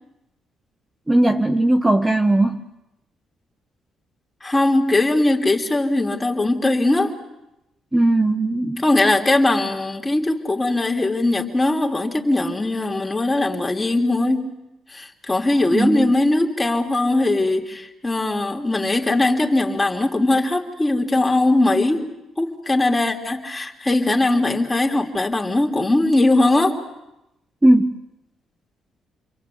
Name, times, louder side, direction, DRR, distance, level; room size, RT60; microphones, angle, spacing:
voice 1, 1.1-2.6 7.9-8.8 15.7-16.1 27.6-28.0, right 1 dB, 15° right, 6 dB, 1.3 m, -18 dB
voice 2, 4.4-7.1 8.8-14.5 14.9-22.0 22.4-26.8, left 2 dB, 15° left, 2 dB, 3.4 m, -20 dB
29.5 x 23.5 x 8.4 m, 0.91 s
cardioid pair, 90°, 0 cm